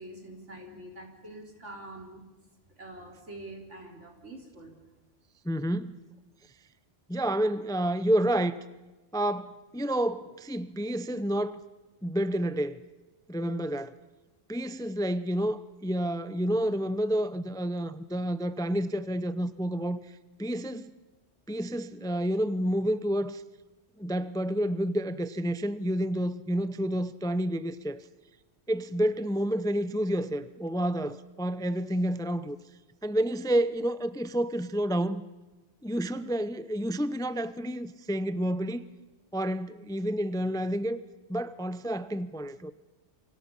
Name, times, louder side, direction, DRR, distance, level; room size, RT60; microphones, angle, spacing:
voice 1, 0.0-2.2 2.8-4.8, right 1 dB, 75° right, 4.3 m, -45 dB
voice 2, 5.4-6.0 7.1-8.6 9.1-11.6 12.0-12.8 13.3-14.0 14.5-20.1 20.4-20.9 21.5-23.4 24.0-28.1 28.7-32.6 33.0-35.2 35.8-38.9 39.3-41.0 41.3-42.7, right 1 dB, 5° left, 0.6 m, -29 dB
29.0 x 24.5 x 5.6 m
omnidirectional pair, 1.3 m